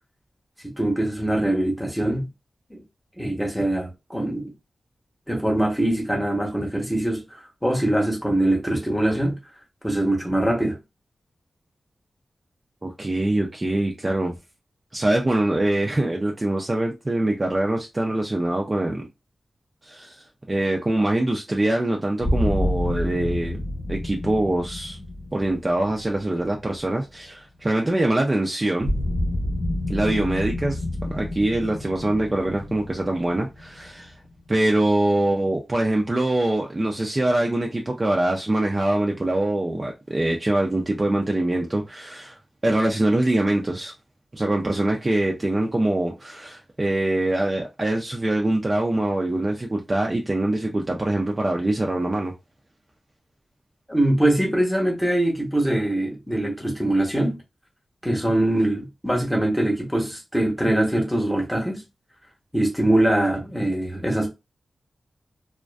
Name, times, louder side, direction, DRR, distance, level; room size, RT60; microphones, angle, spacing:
voice 1, 0.6-2.3 2.7-2.8 3.2-4.5 5.3-9.4 9.8-10.8 53.9-57.4 58.0-61.8 62.5-64.3, right 1 dB, 5° left, 0.8 m, -23 dB
voice 2, 12.8-14.3 14.9-19.0 19.8-23.6 23.9-25.0 25.3-28.9 29.9-34.1 34.5-42.4 42.6-43.9 44.3-52.3, right 1 dB, 25° right, 0.3 m, -24 dB
sound 1, 22.2-27.2 28.8-34.5, left 1 dB, 55° left, 0.9 m, -29 dB
2.4 x 2.4 x 2.2 m
wide cardioid pair, 120°, 0 cm